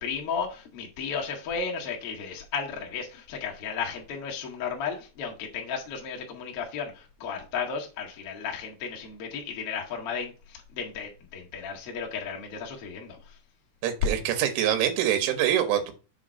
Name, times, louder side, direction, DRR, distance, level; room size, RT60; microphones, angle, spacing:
voice 1, 0.0-13.2, left 6 dB, 70° left, 1.3 m, -34 dB
voice 2, 13.8-15.9, right 10 dB, 85° right, 3.6 m, -25 dB
7.1 x 3.8 x 6.2 m
omnidirectional pair, 5.5 m